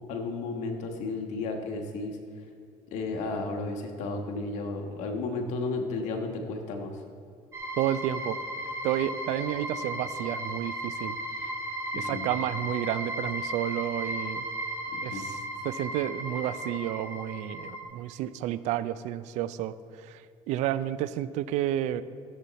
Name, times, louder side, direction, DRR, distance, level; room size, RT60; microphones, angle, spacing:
voice 1, 0.1-2.2 2.9-7.0 11.9-12.3 14.9-15.3, left 3 dB, 80° left, 4 dB, 1.4 m, -33 dB
sound 1, 7.5-17.8, equal, 25° right, 1.8 m, -35 dB
voice 2, 7.8-8.4 8.8-11.2 11.9-14.4 15.0-15.4 15.6-22.0, right 12 dB, 80° right, 15 dB, 0.5 m, -31 dB
15.0 x 7.3 x 4.1 m, 2.4 s
cardioid pair, 95°, 12 cm